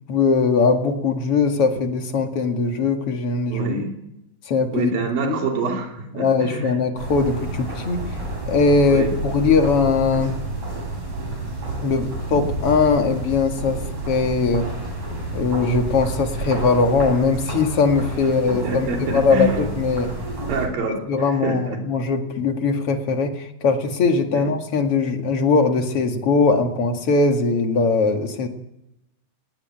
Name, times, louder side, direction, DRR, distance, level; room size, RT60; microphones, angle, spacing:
voice 1, 0.1-3.8 4.5-4.9 6.1-8.0 8.5-10.4 11.8-14.6 15.3-20.1 21.1-28.5, left 4 dB, 45° left, 4 dB, 2.7 m, -20 dB
voice 2, 3.5-4.0 4.7-6.8 8.9-9.1 11.2-11.3 18.4-19.5 20.5-21.0 21.4-21.8 24.3-24.5, right 3 dB, 90° right, 2 dB, 4.7 m, -26 dB
sound 1, 7.0-20.7, right 2 dB, 50° right, 8.8 m, -30 dB
19.5 x 17.5 x 9.1 m, 0.88 s
omnidirectional pair, 3.9 m